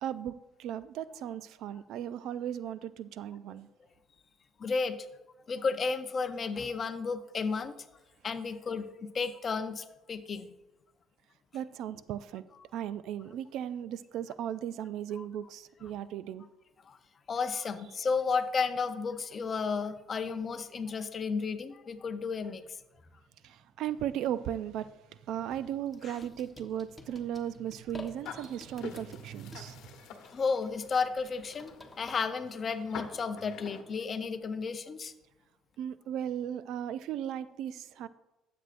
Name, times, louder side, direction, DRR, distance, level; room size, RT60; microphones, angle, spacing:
voice 1, 0.0-3.7 11.5-12.4 12.7-16.5 23.4-29.9 35.8-38.1, right 10 dB, 75° right, 15 dB, 0.3 m, -36 dB
voice 2, 4.6-5.1 5.5-7.7 8.2-8.9 9.1-10.5 16.9-17.0 17.3-22.6 26.0-26.2 30.3-35.1, left 5 dB, 35° left, 9 dB, 0.6 m, -33 dB
sound 1, 25.4-32.1, left 2 dB, 10° left, 1.1 m, -52 dB
sound 2, 28.2-33.8, left 7 dB, 80° left, 1.0 m, -47 dB
12.5 x 7.7 x 2.5 m, 1.0 s
cardioid pair, 120°, 0 cm